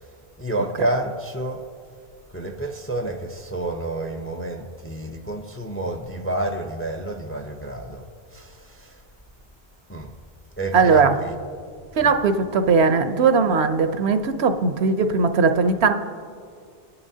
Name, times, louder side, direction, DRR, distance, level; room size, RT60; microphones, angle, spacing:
voice 1, 0.4-1.6 2.3-8.9 9.9-10.1 10.6-11.3 12.0-12.1, right 1 dB, 15° left, 0.5 m, -29 dB
voice 2, 10.7-11.2 12.0-15.9, right 4 dB, 75° right, 1.0 m, -19 dB
23.0 x 11.0 x 2.8 m
omnidirectional pair, 1.1 m